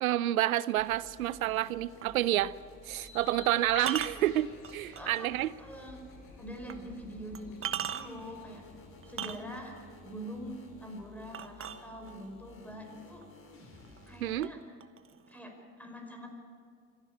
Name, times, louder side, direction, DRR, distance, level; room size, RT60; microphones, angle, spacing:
voice 1, 0.0-2.5 2.9-5.5 14.2-14.5, right 14 dB, 90° right, 19 dB, 0.5 m, -29 dB
sound 1, 0.8-14.4, left 2 dB, 30° left, 3.6 m, -54 dB
sound 2, 2.0-2.2 3.8-5.2 5.7-5.8 6.7-6.8 7.4-8.3 9.0-9.8 11.3-12.3 13.2-13.3 13.7-14.2 14.4-15.4, right 9 dB, 30° right, 1.1 m, -38 dB
Bird, 2.9-9.4, left 4 dB, 50° left, 5.9 m, -51 dB
voice 2, 4.9-5.3 5.6-6.0 6.4-8.6 9.1-9.8 10.0-13.3 14.1-14.6 15.3-16.3, equal, 5° left, 2 dB, 5.3 m, -44 dB
26.0 x 11.5 x 8.9 m, 2.2 s
hypercardioid pair, 75°, 41 cm